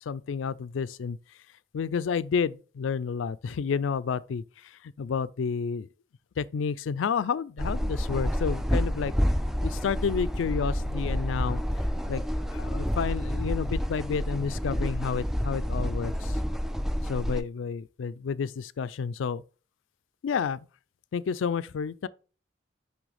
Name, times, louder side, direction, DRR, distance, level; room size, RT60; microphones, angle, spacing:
voice 1, 0.1-1.2 1.7-4.4 5.0-5.9 6.4-9.1 9.6-11.6 12.1-12.2 12.5-16.3 17.1-19.4 20.2-20.6 21.1-22.1, left 6 dB, 80° left, 0.4 m, -30 dB
sound 1, 7.6-17.4, equal, ahead, 0.4 m, -29 dB
6.2 x 5.5 x 3.3 m
head